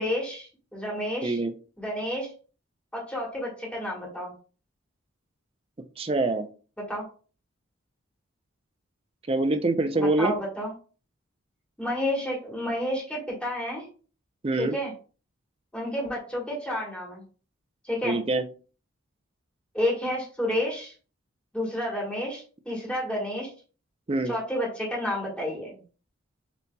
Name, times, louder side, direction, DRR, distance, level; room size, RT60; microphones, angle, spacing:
voice 1, 0.0-1.4 1.8-2.3 2.9-4.3 6.9-7.0 9.9-10.7 11.8-13.8 14.6-14.9 15.7-17.2 17.8-18.2 19.7-20.9 21.5-23.5 24.2-25.8, left 1 dB, 5° left, -4 dB, 1.3 m, -30 dB
voice 2, 1.2-1.5 6.0-6.5 9.3-10.4 14.4-14.8 18.0-18.4 24.1-24.3, right 2 dB, 25° right, 8 dB, 0.4 m, -25 dB
6.8 x 2.8 x 2.2 m, 0.38 s
head